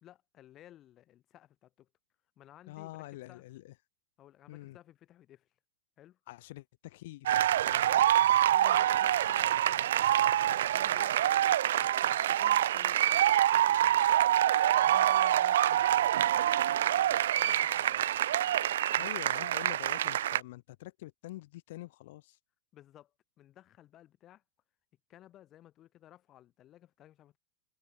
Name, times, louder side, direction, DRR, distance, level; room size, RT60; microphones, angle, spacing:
voice 1, 0.0-1.9 2.4-3.5 4.2-5.5 6.0-6.2 7.7-9.9 10.7-11.2 11.8-14.2 14.7-15.6 15.9-18.2 18.9-19.1 22.7-24.4 25.1-27.4, left 12 dB, 30° left, 2.3 m, -57 dB
voice 2, 2.7-3.7 4.5-4.8 6.3-7.5 18.9-22.4, left 18 dB, 60° left, 2.6 m, -46 dB
sound 1, 7.3-20.4, right 12 dB, 85° right, 0.3 m, -26 dB
supercardioid pair, 155°, 0 cm